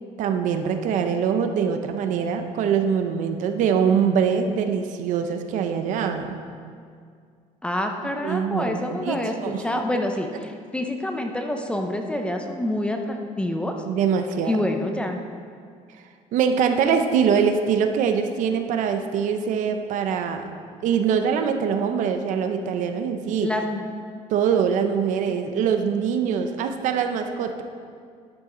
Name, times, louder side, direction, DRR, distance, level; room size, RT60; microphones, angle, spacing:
voice 1, 0.2-6.4 8.2-9.6 13.9-14.6 16.3-20.4 20.8-23.5 24.3-27.6, right 7 dB, 65° right, 6 dB, 0.8 m, -23 dB
voice 2, 7.6-13.8 14.4-15.2 23.4-23.9, left 1 dB, 5° left, 3 dB, 0.7 m, -27 dB
11.5 x 8.8 x 3.9 m, 2.2 s
cardioid pair, 145°, 14 cm